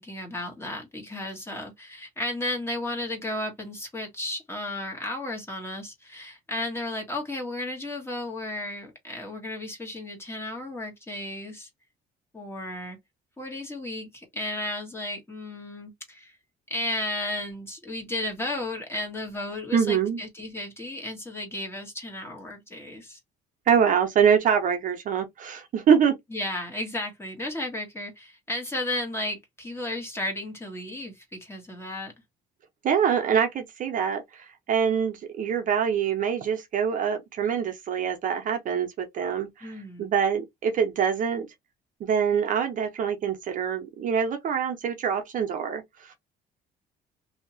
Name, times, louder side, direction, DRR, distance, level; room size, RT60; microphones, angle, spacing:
voice 1, 0.0-11.7 12.3-13.0 13.4-16.3 16.7-23.2 26.3-32.1 39.6-40.1, left 1 dB, 15° left, 1.3 m, -34 dB
voice 2, 19.7-20.2 23.7-26.2 32.8-41.5 42.0-46.1, right 7 dB, 50° right, 0.8 m, -25 dB
2.8 x 2.8 x 2.7 m
cardioid pair, 110°, 17 cm